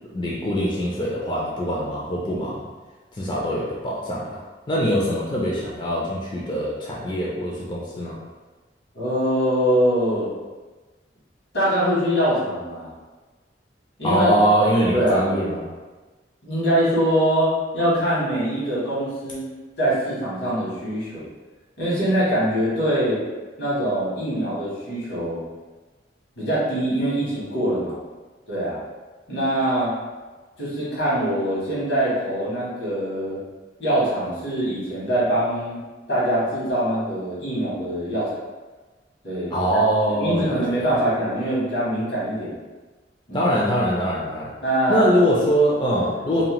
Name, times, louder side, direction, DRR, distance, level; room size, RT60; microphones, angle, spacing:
voice 1, 0.1-2.7 3.1-4.4 4.7-8.2 14.0-15.6 39.5-40.9 43.3-44.5 44.9-46.4, equal, 25° left, -5 dB, 0.4 m, -23 dB
voice 2, 8.9-10.3 11.5-12.9 14.0-14.4 14.9-15.3 16.4-19.4 19.8-21.3 21.8-23.2 23.6-25.4 26.4-27.9 28.5-28.8 29.3-29.9 30.6-33.4 33.8-35.8 36.1-38.4 39.2-39.5 40.1-42.6 43.3-43.5 44.6-45.0 46.3-46.4, right 1 dB, 85° left, -8 dB, 1.3 m, -23 dB
2.7 x 2.1 x 3.0 m, 1.3 s
head